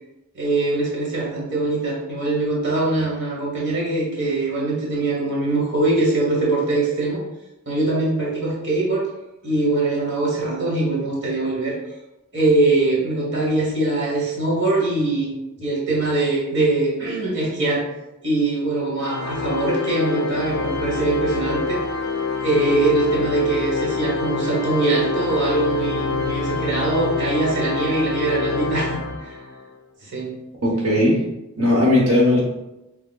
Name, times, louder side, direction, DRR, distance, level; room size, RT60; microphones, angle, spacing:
voice 1, 0.3-7.2 7.7-9.0 9.4-11.8 12.3-17.8 18.2-21.8 22.4-29.4 30.0-30.3, right 2 dB, 55° right, -4 dB, 1.1 m, -22 dB
Organ, 19.0-29.6, left 4 dB, 70° left, 0.4 m, -26 dB
voice 2, 30.6-31.2 31.6-32.4, left 1 dB, 85° right, -4 dB, 1.0 m, -17 dB
6.1 x 2.2 x 2.3 m, 0.93 s
head